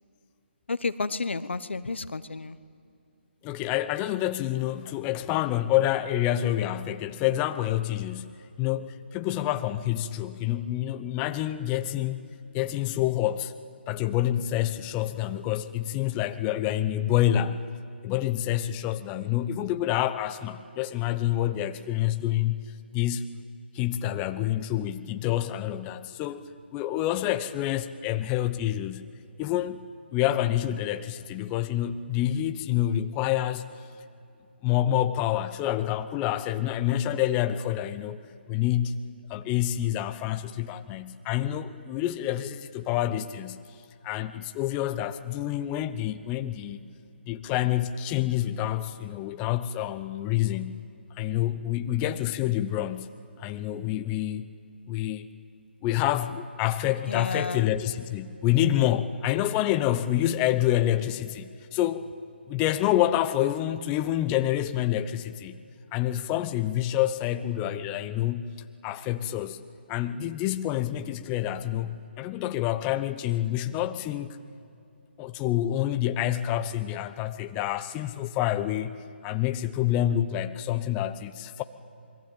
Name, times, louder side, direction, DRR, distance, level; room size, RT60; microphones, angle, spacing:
voice 1, 0.7-2.6 57.1-57.7, left 4 dB, 80° left, 14 dB, 1.2 m, -31 dB
voice 2, 3.4-12.2 12.5-13.5 13.9-17.6 18.0-23.2 23.7-29.1 29.4-29.8 30.1-33.7 34.6-38.2 38.5-39.0 39.3-43.6 44.0-46.8 47.3-50.8 51.2-53.1 53.4-54.5 54.9-55.3 55.8-62.1 62.5-65.6 65.9-68.6 68.8-69.6 69.9-74.4 75.2-78.9 79.2-81.6, left 12 dB, 20° left, 10 dB, 0.8 m, -27 dB
27.5 x 22.5 x 8.9 m, 2.5 s
hypercardioid pair, 150°, 6 cm